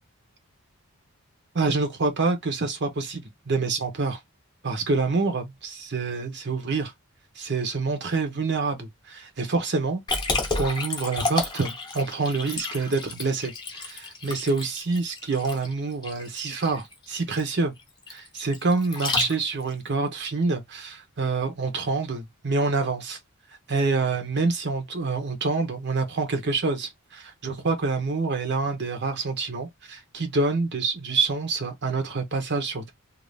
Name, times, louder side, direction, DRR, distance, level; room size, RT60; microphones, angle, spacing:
voice 1, 1.5-4.2 4.6-6.9 7.4-10.0 10.6-17.7 18.1-23.2 23.7-32.9, right 3 dB, 50° right, 0.7 m, -27 dB
Liquid, 10.1-19.7, left 3 dB, 20° left, 0.8 m, -31 dB
2.5 x 2.4 x 3.2 m
head